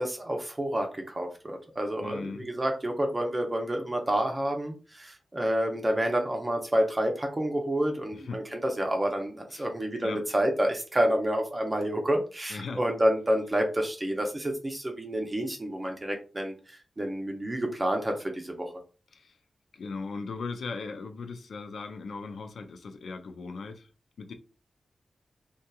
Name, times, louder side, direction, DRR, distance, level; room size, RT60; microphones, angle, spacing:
voice 1, 0.0-18.7, right 1 dB, 25° right, 0.6 m, -29 dB
voice 2, 2.0-2.5 8.1-8.5 9.5-9.7 10.0-10.3 12.5-12.8 19.1-19.4 19.7-23.9 24.2-24.3, left 4 dB, 85° left, 0.4 m, -38 dB
2.8 x 2.3 x 2.3 m
cardioid pair, 70°, 0 cm